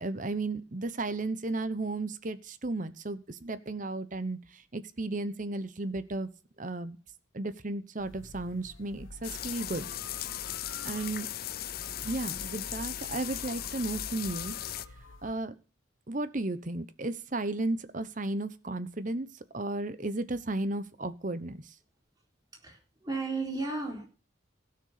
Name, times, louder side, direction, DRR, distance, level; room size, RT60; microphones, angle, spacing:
voice 1, 0.0-6.3 6.6-7.0 7.3-9.9 10.8-11.3 12.0-14.6 15.2-15.5 16.1-19.3 19.5-21.7, right 2 dB, 40° right, 0.9 m, -34 dB
sound 1, 8.0-15.4, left 1 dB, 80° left, 1.4 m, -48 dB
sound 2, 9.2-14.9, left 12 dB, 50° left, 0.6 m, -37 dB
voice 2, 22.5-24.1, right 3 dB, 20° right, 4.1 m, -34 dB
16.5 x 6.7 x 6.7 m
head